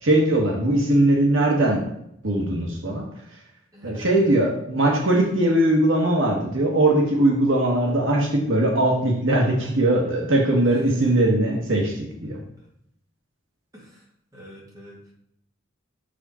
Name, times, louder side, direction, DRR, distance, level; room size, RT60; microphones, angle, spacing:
voice 1, 0.0-1.8 2.2-3.0 3.8-12.4, right 1 dB, 70° right, 0 dB, 1.4 m, -20 dB
voice 2, 3.7-4.2 10.6-10.7 13.7-14.1 14.3-15.1, equal, 15° right, -4 dB, 2.1 m, -45 dB
7.3 x 5.0 x 4.3 m, 0.74 s
head